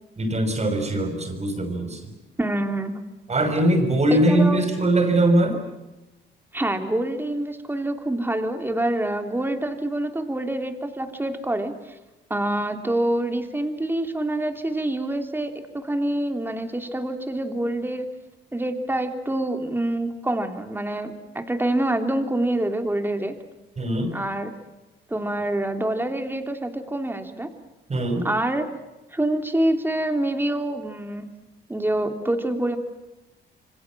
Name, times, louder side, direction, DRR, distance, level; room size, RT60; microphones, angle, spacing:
voice 1, 0.2-2.1 3.3-5.6 23.8-24.1 27.9-28.3, right 1 dB, 35° right, 6 dB, 6.1 m, -21 dB
voice 2, 2.4-2.9 4.1-4.6 6.5-11.7 12.3-18.1 18.5-23.3 24.1-24.5 25.1-27.5 28.2-28.6 29.1-31.3 31.7-32.8, right 1 dB, 10° right, 6 dB, 3.2 m, -26 dB
27.5 x 25.5 x 7.4 m, 1.0 s
cardioid pair, 105°, 20 cm